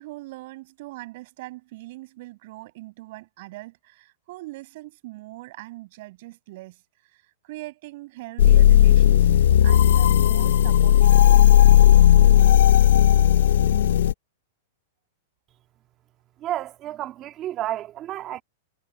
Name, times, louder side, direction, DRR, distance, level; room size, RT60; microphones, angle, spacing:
voice 1, 0.0-6.8 7.1-11.8, right 20 dB, 50° right, 6.2 m, -41 dB
sound 1, 8.4-14.1, left 11 dB, 85° left, 0.9 m, -15 dB
voice 2, 16.4-18.4, right 13 dB, 25° right, 1.9 m, -31 dB
supercardioid pair, 155°, 0 cm